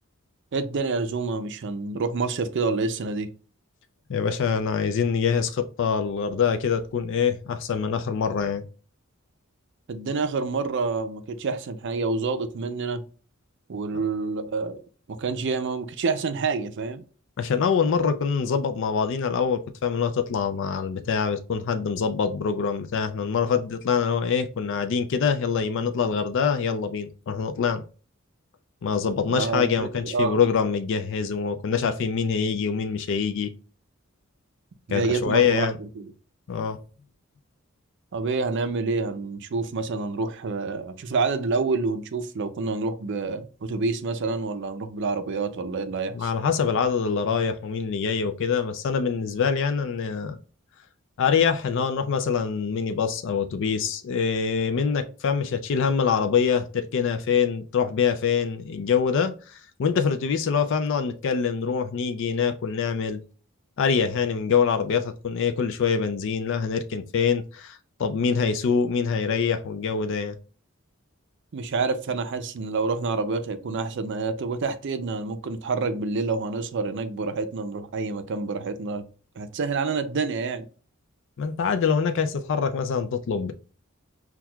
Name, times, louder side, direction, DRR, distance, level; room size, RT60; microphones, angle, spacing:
voice 1, 0.5-3.3 9.9-13.0 13.7-14.8 15.1-17.0 29.3-30.4 34.9-36.1 38.1-46.3 71.5-79.0 79.4-80.7, right 4 dB, 60° right, 0.5 m, -28 dB
voice 2, 4.1-8.6 17.4-27.8 28.8-33.5 34.9-35.8 36.5-36.8 46.1-50.4 51.2-63.2 63.8-70.4 81.4-83.5, left 6 dB, 60° left, 0.4 m, -25 dB
5.9 x 2.3 x 2.3 m
head